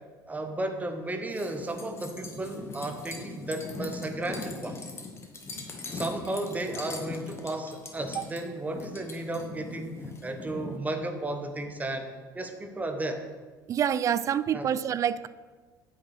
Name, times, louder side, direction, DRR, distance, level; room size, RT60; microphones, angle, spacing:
voice 1, 0.3-4.8 5.9-12.1 12.3-13.2 14.5-14.7, right 2 dB, 15° right, 6 dB, 1.0 m, -34 dB
sound 1, 1.3-10.8, left 3 dB, 25° left, 1.5 m, -41 dB
voice 2, 13.7-15.3, right 9 dB, 30° right, 17 dB, 0.3 m, -27 dB
9.6 x 8.6 x 3.3 m, 1.4 s
figure-of-eight pair, 65°, 11 cm